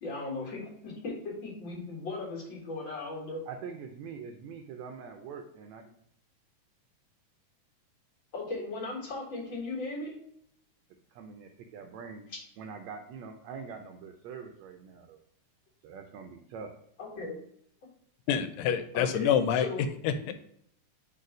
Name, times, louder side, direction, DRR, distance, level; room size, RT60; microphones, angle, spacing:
voice 1, 0.0-3.4 8.3-10.2 17.0-17.4 18.9-19.9 20.2-20.3, left 3 dB, 45° left, -2 dB, 2.0 m, -37 dB
voice 2, 3.5-6.0 11.1-12.3 12.6-15.2 15.8-16.7, right 6 dB, 75° right, 4 dB, 1.6 m, -44 dB
voice 3, 18.3-19.7 20.0-20.3, left 8 dB, 85° left, 10 dB, 2.2 m, -27 dB
4.7 x 4.1 x 5.0 m, 0.70 s
omnidirectional pair, 3.8 m